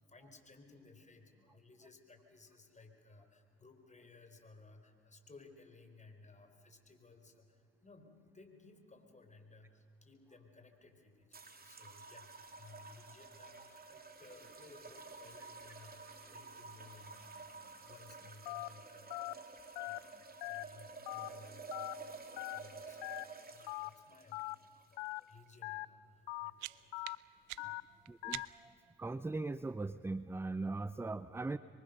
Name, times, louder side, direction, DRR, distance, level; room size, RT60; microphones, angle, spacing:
voice 1, 0.0-23.2 23.5-27.1 27.6-27.8, left 3 dB, 25° left, 5 dB, 4.3 m, -59 dB
sound 1, 11.3-25.6, right 4 dB, 30° right, 3.3 m, -51 dB
Telephone, 18.5-18.7 19.1-19.3 19.8-20.0 20.4-20.6 21.1-21.3 21.7-21.9 22.4-22.6 23.0-23.2 23.7-23.9 24.3-24.5 25.0-25.2 25.6-25.9 26.3-26.5 26.9-27.2 27.6-27.8 28.2-28.5, left 24 dB, 85° left, 0.6 m, -41 dB
sound 2, 26.1-28.8, right 19 dB, 75° right, 0.7 m, -48 dB
voice 2, 28.1-31.6, right 3 dB, 10° right, 15 dB, 0.6 m, -40 dB
26.0 x 23.5 x 6.6 m, 2.6 s
supercardioid pair, 70°, 30 cm